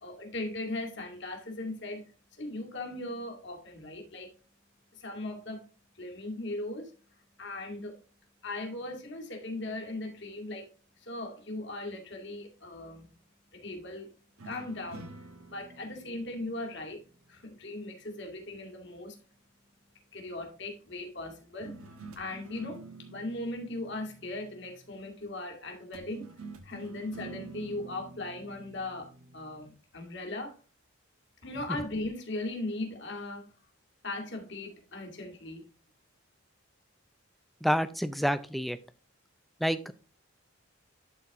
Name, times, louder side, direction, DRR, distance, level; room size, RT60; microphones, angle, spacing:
voice 1, 0.0-2.0 2.4-4.3 4.9-5.6 5.9-6.9 7.4-8.0 8.4-10.7 11.0-13.1 13.5-14.1 14.4-15.1 15.5-17.0 17.3-19.2 20.1-21.7 22.1-22.8 23.1-26.3 26.6-30.6 31.4-33.5 34.0-35.6, left 2 dB, 55° left, 2 dB, 2.2 m, -38 dB
sound 1, 14.4-17.8 21.6-25.0 25.9-29.8, right 3 dB, 85° right, 1.2 m, -48 dB
voice 2, 37.6-38.8 39.6-39.9, equal, ahead, 11 dB, 0.4 m, -28 dB
11.5 x 4.2 x 3.5 m, 0.35 s
head